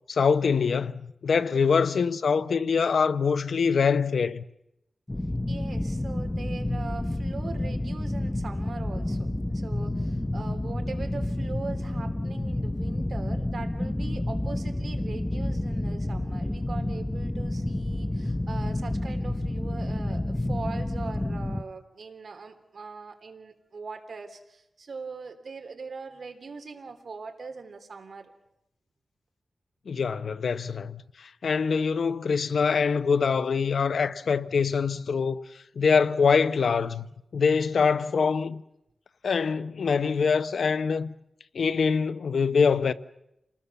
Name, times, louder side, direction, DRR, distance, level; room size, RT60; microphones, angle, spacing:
voice 1, 0.1-4.4 29.9-35.4 35.8-37.1 37.3-38.6 39.2-41.1 41.5-42.9, left 5 dB, 85° left, 0.9 m, -24 dB
voice 2, 1.4-1.8 5.5-28.3, right 4 dB, 70° right, 3.1 m, -41 dB
sound 1, 5.1-21.6, left 1 dB, 15° left, 0.8 m, -29 dB
28.0 x 19.5 x 7.1 m
wide cardioid pair, 120°, 0 cm